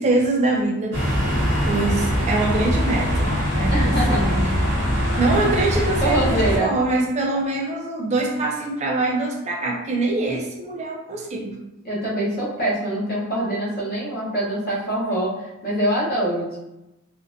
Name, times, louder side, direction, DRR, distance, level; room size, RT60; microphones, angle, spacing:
voice 1, 0.0-4.6 5.2-11.6, right 2 dB, 30° right, 0 dB, 0.4 m, -24 dB
sound 1, 0.9-6.6, equal, 55° right, 0.7 m, -22 dB
voice 2, 3.7-4.2 6.0-6.8 11.8-15.3 15.6-16.6, right 1 dB, 40° left, -7 dB, 0.8 m, -24 dB
2.6 x 2.1 x 2.5 m, 0.93 s
head